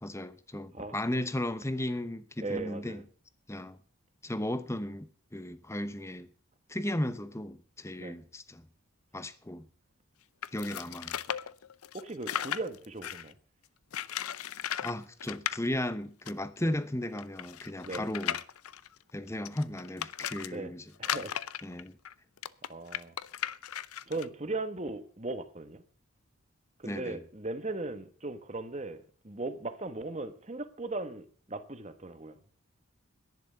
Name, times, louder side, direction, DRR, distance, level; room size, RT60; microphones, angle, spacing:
voice 1, 0.0-3.0 3.5-3.8 4.2-6.3 6.7-8.6 9.1-9.7 10.5-11.2 14.8-18.4 19.1-20.9 21.6-22.0 26.8-27.2, left 1 dB, 15° left, 0.8 m, -35 dB
voice 2, 2.4-3.0 8.0-8.2 11.9-13.3 16.6-16.7 17.8-18.0 20.5-20.7 21.0-21.4 22.7-23.1 24.1-25.8 26.8-32.4, right 2 dB, 30° right, 1.2 m, -38 dB
sound 1, 10.4-13.3 13.9-14.9 15.2-15.6 16.3-16.4 16.6-16.7 17.2-20.5 21.0-24.3, left 10 dB, 85° left, 0.6 m, -36 dB
11.0 x 10.5 x 6.7 m
head